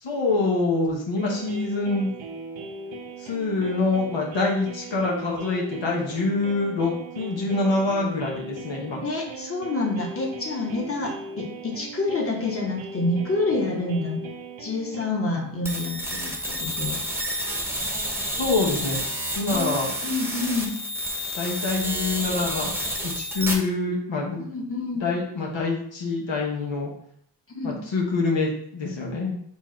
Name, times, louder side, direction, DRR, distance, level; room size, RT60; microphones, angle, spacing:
voice 1, 0.0-2.1 3.2-9.0 18.4-19.0 19.4-19.9 21.4-22.7 23.0-24.4 24.9-26.9 27.6-29.3, left 3 dB, 80° left, -2 dB, 1.0 m, -25 dB
sound 1, 1.2-15.1, right 3 dB, 80° right, 0.7 m, -39 dB
voice 2, 9.0-14.2 14.6-17.0 19.5-19.7 20.0-20.7 24.5-25.1 27.5-27.8, left 2 dB, 30° left, -1 dB, 1.3 m, -28 dB
sound 2, 15.7-23.5, equal, 5° right, 0.9 m, -29 dB
4.5 x 2.5 x 4.3 m, 0.68 s
cardioid pair, 55°, 45 cm